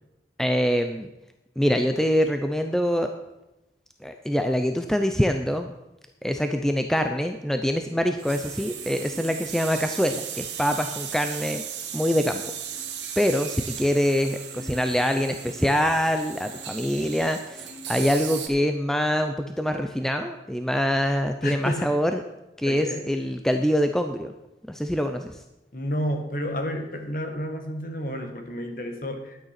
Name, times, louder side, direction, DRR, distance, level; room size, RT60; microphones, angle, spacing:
voice 1, 0.4-1.1 1.6-3.1 4.0-5.7 6.2-11.6 11.9-12.4 13.2-22.2 22.6-24.3 24.7-25.4, equal, 5° left, 6 dB, 0.5 m, -24 dB
sound 1, 8.2-18.5, right 8 dB, 75° right, 1.9 m, -36 dB
voice 2, 21.4-21.9 22.7-23.1 25.7-29.4, equal, 45° left, 5 dB, 1.7 m, -31 dB
11.5 x 9.4 x 5.8 m, 0.94 s
head